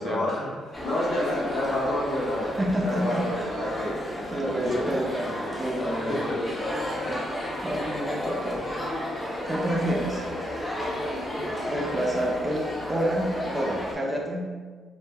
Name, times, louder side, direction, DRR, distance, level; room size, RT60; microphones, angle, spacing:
voice 1, 0.0-2.5 2.8-4.0 4.4-4.8 5.7-6.5 6.8-6.9, left 1 dB, 75° left, -7 dB, 0.6 m, -29 dB
sound 1, 0.7-13.9, equal, 20° left, 0.6 m, -32 dB
sound 2, 1.3-11.0, left 2 dB, 75° right, 0.5 m, -51 dB
voice 2, 2.6-3.9 4.3-6.3 7.6-8.6 9.4-10.3 11.7-14.5, right 1 dB, 25° right, -1 dB, 0.4 m, -29 dB
2.1 x 2.0 x 3.2 m, 1.5 s
cardioid pair, 90°, 0 cm